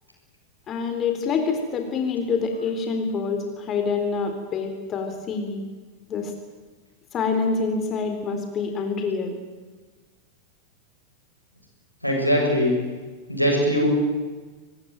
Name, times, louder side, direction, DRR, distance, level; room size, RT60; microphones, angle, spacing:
voice 1, 0.7-5.6 6.1-6.3 7.1-9.4, left 5 dB, 30° left, 5 dB, 3.8 m, -26 dB
voice 2, 12.0-12.7 13.3-13.9, equal, 90° left, 0 dB, 7.1 m, -21 dB
24.0 x 20.5 x 9.3 m, 1.3 s
figure-of-eight pair, 90°, 0 cm